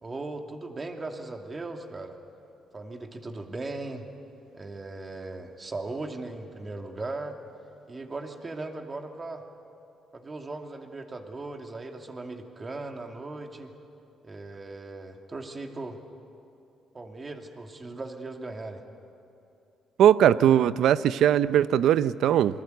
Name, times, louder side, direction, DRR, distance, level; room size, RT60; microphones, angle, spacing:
voice 1, 0.0-2.2 2.7-4.1 4.5-7.3 7.9-9.4 10.1-13.7 14.2-16.0 16.9-18.8, right 2 dB, 30° right, 3 dB, 2.6 m, -38 dB
voice 2, 20.0-22.6, right 10 dB, 75° right, 15 dB, 0.6 m, -20 dB
27.5 x 21.0 x 8.1 m, 2.8 s
cardioid pair, 90°, 0 cm